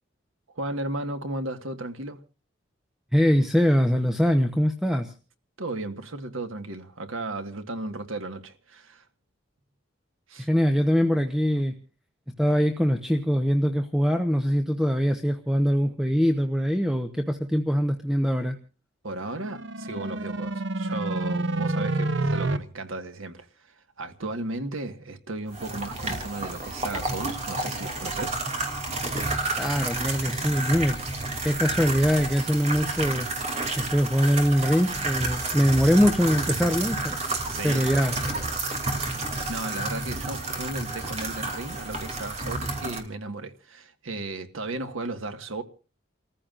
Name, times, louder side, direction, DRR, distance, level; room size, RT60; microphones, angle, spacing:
voice 1, 0.5-2.2 5.6-9.1 10.3-10.5 19.0-28.4 37.5-37.8 39.5-45.6, right 2 dB, 85° right, 1.6 m, -35 dB
voice 2, 3.1-5.1 10.4-11.8 12.4-18.6 29.6-31.0 31.4-33.3 33.8-37.2 37.6-38.1, equal, ahead, 0.9 m, -23 dB
sound 1, 19.2-22.6, right 2 dB, 60° right, 0.9 m, -28 dB
sound 2, 25.5-43.0, right 2 dB, 35° right, 2.8 m, -30 dB
30.0 x 14.5 x 2.5 m
head